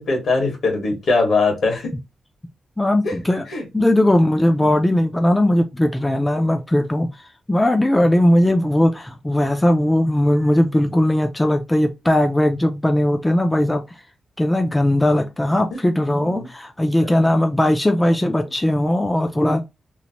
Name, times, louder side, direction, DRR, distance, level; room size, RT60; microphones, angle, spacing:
voice 1, 0.0-1.9 3.0-3.1 3.5-3.6 4.6-4.7 16.2-16.5 17.0-17.2, left 3 dB, 70° left, 1.4 m, -21 dB
voice 2, 2.8-3.5 3.7-7.1 7.5-13.8 14.4-19.6, left 1 dB, 10° left, 0.4 m, -18 dB
3.0 x 2.1 x 2.8 m
cardioid pair, 100°, 0 cm